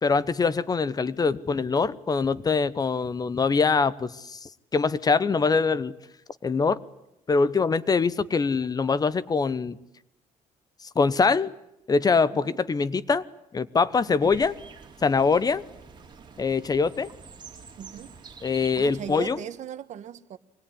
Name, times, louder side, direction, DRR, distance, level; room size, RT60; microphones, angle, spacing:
voice 1, 0.0-5.9 6.4-6.8 7.3-9.8 10.9-11.5 11.9-13.2 13.5-14.6 15.0-15.6 16.4-17.1 18.4-19.4, left 4 dB, 30° left, 0.9 m, -23 dB
sound 1, 14.2-19.3, right 5 dB, 35° right, 3.9 m, -47 dB
voice 2, 17.8-18.1 18.7-20.4, right 10 dB, 60° right, 1.4 m, -39 dB
24.5 x 20.0 x 9.9 m
cardioid pair, 120°, 14 cm